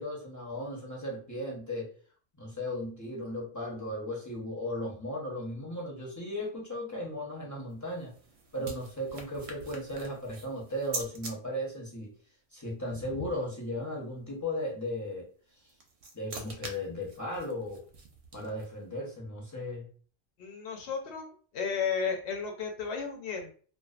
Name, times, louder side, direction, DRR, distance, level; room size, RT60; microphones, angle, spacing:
voice 1, 0.0-1.9 2.4-8.1 8.5-12.1 12.5-15.3 16.1-17.8 18.3-19.9, left 1 dB, 20° left, -4 dB, 0.6 m, -36 dB
sound 1, 7.7-11.3 15.5-18.8, right 3 dB, 90° right, 0.9 m, -44 dB
voice 2, 20.4-23.5, left 6 dB, 85° left, 3 dB, 0.9 m, -33 dB
2.4 x 2.3 x 2.3 m, 0.43 s
omnidirectional pair, 1.1 m